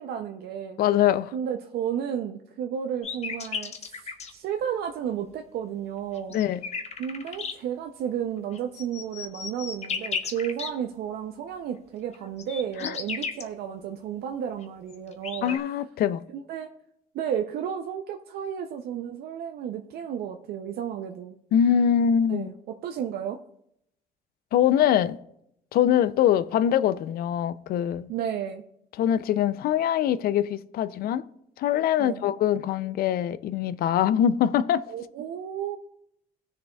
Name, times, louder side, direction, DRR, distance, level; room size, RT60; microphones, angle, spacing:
voice 1, 0.0-0.8 1.3-6.4 7.0-15.6 16.3-16.7 17.1-21.4 22.3-23.4 28.1-28.6 32.0-32.3 34.9-35.8, right 9 dB, 70° right, 0.6 m, -32 dB
voice 2, 0.8-1.3 6.3-6.6 12.8-13.0 15.4-16.2 21.5-22.5 24.5-25.2 25.7-28.1 29.0-31.2 31.6-34.8, left 9 dB, 65° left, 0.4 m, -23 dB
sound 1, 3.0-4.3 6.1-7.5 8.5-10.7 12.1-13.4 14.6-14.7 14.9-15.6, left 5 dB, 40° left, 0.8 m, -34 dB
18.0 x 6.6 x 2.3 m
cardioid pair, 110°, 17 cm